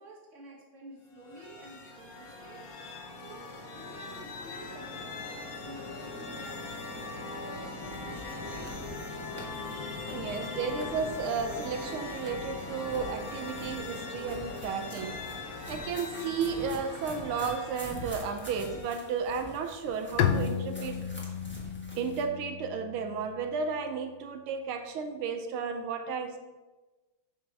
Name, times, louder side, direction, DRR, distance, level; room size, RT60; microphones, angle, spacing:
voice 1, 0.0-2.6 3.2-8.7, right 1 dB, 40° right, -2 dB, 1.8 m, -50 dB
sound 1, 1.1-19.3, left 3 dB, 55° left, 1.2 m, -41 dB
sound 2, 7.8-22.2, left 1 dB, 5° left, 0.9 m, -46 dB
voice 2, 10.1-15.2 15.7-21.0 22.0-26.4, right 5 dB, 85° right, 6 dB, 1.5 m, -33 dB
Bowed string instrument, 20.2-23.7, left 8 dB, 85° left, 0.8 m, -32 dB
7.4 x 5.2 x 4.5 m, 1.2 s
omnidirectional pair, 2.3 m